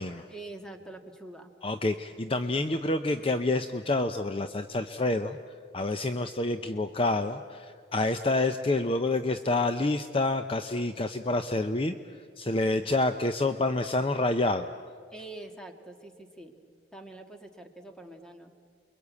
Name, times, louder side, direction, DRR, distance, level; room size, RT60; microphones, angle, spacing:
voice 1, 0.3-1.5 12.6-12.9 15.1-16.6 16.9-18.5, right 2 dB, 5° left, 4 dB, 2.0 m, -45 dB
voice 2, 1.6-5.4 5.7-14.7, left 2 dB, 30° left, 8 dB, 0.7 m, -28 dB
29.5 x 23.0 x 8.4 m, 2.2 s
head